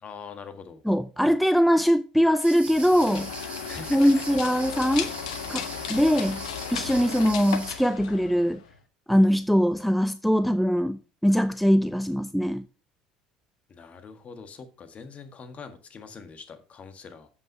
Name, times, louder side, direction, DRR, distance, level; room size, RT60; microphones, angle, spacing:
voice 1, 0.0-0.8 3.7-4.2 13.7-17.3, left 5 dB, 35° left, 1.6 m, -43 dB
voice 2, 0.9-3.3 3.9-5.1 5.5-6.4 6.7-8.6 9.1-12.6, equal, ahead, 0.4 m, -22 dB
sound 1, 2.4-7.7, right 3 dB, 35° right, 4.4 m, -40 dB
sound 2, 2.6-8.8, left 8 dB, 80° left, 1.0 m, -35 dB
7.8 x 5.6 x 5.4 m
hypercardioid pair, 70°, 4 cm